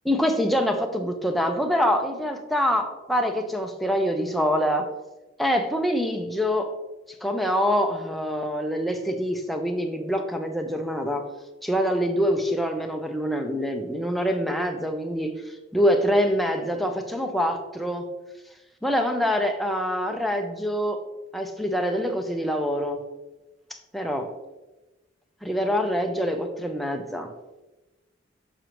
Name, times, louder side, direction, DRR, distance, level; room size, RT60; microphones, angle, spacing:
voice 1, 0.1-4.9 5.4-6.7 7.2-11.3 11.6-15.4 15.7-18.1 18.8-21.0 21.3-23.0 23.7-24.3 25.4-27.3, equal, ahead, 3 dB, 0.5 m, -25 dB
6.6 x 6.1 x 3.0 m, 1.1 s
head